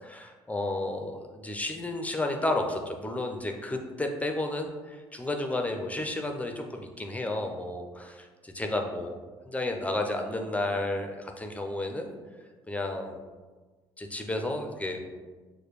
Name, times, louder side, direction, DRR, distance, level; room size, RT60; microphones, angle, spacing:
voice 1, 0.0-9.1 9.5-12.1 12.7-13.1 14.0-15.0, left 2 dB, 10° left, 3 dB, 0.6 m, -32 dB
6.4 x 2.2 x 3.1 m, 1.4 s
hypercardioid pair, 60°, 12 cm